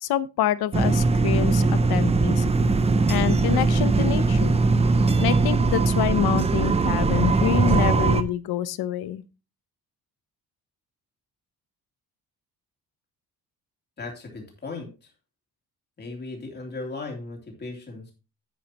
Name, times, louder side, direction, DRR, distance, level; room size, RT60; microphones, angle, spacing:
voice 1, 0.0-2.8 3.1-4.6 5.2-9.2, left 11 dB, 85° left, 0.8 m, -27 dB
sound 1, 0.7-8.2, right 3 dB, 15° right, 0.5 m, -20 dB
voice 2, 14.0-15.1 16.0-18.1, left 3 dB, 25° left, 3.0 m, -37 dB
10.0 x 8.7 x 2.9 m
wide cardioid pair, 175°, 36 cm